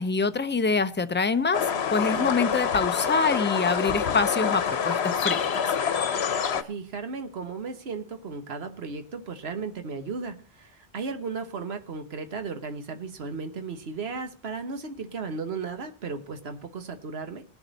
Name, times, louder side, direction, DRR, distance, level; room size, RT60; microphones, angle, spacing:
voice 1, 0.0-1.6 1.9-5.5, left 4 dB, 15° left, 11 dB, 0.4 m, -25 dB
sound 1, 1.5-6.6, left 7 dB, 85° left, 1.1 m, -26 dB
voice 2, 6.6-17.4, right 4 dB, 75° right, 7 dB, 1.4 m, -35 dB
21.0 x 7.2 x 4.0 m, 0.38 s
omnidirectional pair, 1.1 m